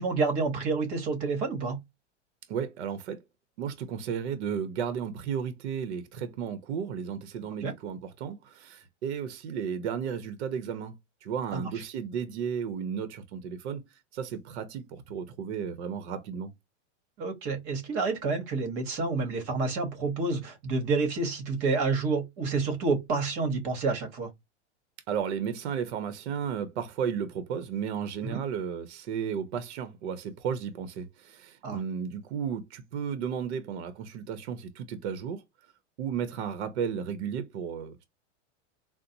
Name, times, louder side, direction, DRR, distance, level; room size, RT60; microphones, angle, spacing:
voice 1, 0.0-1.8 7.6-7.7 11.5-11.7 17.2-24.3 28.2-28.4 31.6-31.8, right 4 dB, 40° right, 1.0 m, -29 dB
voice 2, 2.5-3.2 3.6-10.9 11.2-13.8 14.1-16.5 25.1-35.4 36.0-38.0, right 7 dB, 65° right, 0.8 m, -34 dB
3.9 x 2.1 x 2.6 m
supercardioid pair, 140°, 36 cm